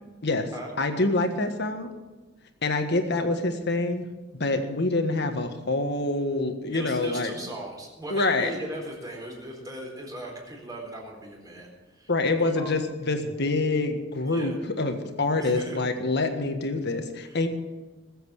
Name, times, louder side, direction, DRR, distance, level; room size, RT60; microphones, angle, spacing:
voice 1, 0.8-1.9 2.6-4.0 4.4-7.3 8.1-8.5 12.1-17.5, left 2 dB, 60° left, 6 dB, 1.6 m, -26 dB
voice 2, 6.7-12.1 12.4-12.7 14.2-14.6 15.4-15.8 17.2-17.5, right 1 dB, 20° right, -1 dB, 4.2 m, -38 dB
20.5 x 8.0 x 6.4 m, 1.2 s
head